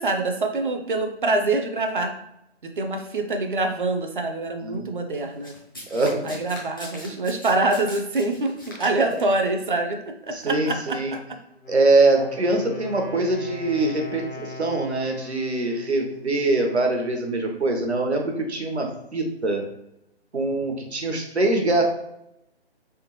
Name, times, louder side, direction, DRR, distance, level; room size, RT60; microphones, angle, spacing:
voice 1, 0.0-2.1 2.6-5.5 6.2-11.2, right 2 dB, 50° right, 5 dB, 0.6 m, -25 dB
Domestic sounds home sounds, 5.4-9.4 10.3-10.4, left 1 dB, 20° left, 0.5 m, -41 dB
voice 2, 5.9-6.3 9.0-9.1 10.3-11.1 11.7-19.6 20.3-21.8, right 2 dB, 80° right, 2 dB, 1.0 m, -23 dB
Wind instrument woodwind instrument, 11.5-17.3, left 3 dB, 50° left, 1.0 m, -40 dB
3.5 x 3.1 x 3.0 m, 0.81 s
figure-of-eight pair, 150°, 33 cm